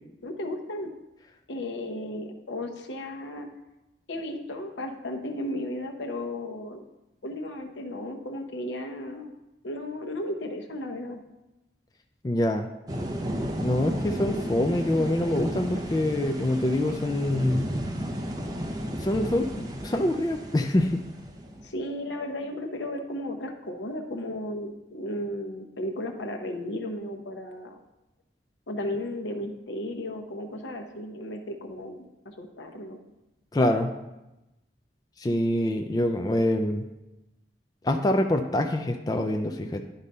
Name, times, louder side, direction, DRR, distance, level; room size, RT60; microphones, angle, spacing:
voice 1, 0.2-0.9 1.5-3.5 4.1-6.8 7.2-9.3 9.6-11.2 21.6-27.8 28.7-33.0, left 1 dB, 80° left, 3 dB, 0.9 m, -34 dB
voice 2, 12.2-12.7 13.6-17.7 19.0-21.0 33.5-33.9 35.2-36.8 37.8-39.8, left 1 dB, 20° left, 4 dB, 0.4 m, -25 dB
sound 1, 12.9-21.7, equal, 20° right, 0.6 m, -33 dB
10.0 x 4.0 x 5.4 m, 0.98 s
head